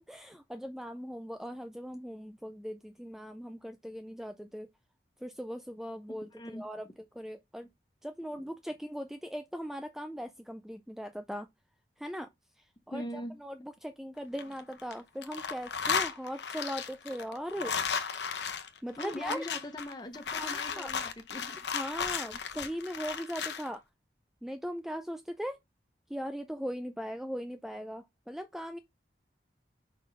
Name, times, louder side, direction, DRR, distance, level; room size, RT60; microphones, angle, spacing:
voice 1, 0.0-4.7 5.2-7.7 8.0-11.5 12.0-12.3 12.5-17.7 18.8-19.5 20.4-20.9 21.7-23.8 24.4-25.6 26.1-28.8, equal, ahead, 0.3 m, -39 dB
voice 2, 6.1-6.6 12.9-13.4 19.0-21.7, left 1 dB, 25° left, 0.7 m, -41 dB
sound 1, 14.2-14.9 15.2-23.7, left 6 dB, 80° left, 0.8 m, -35 dB
5.0 x 4.2 x 5.3 m
head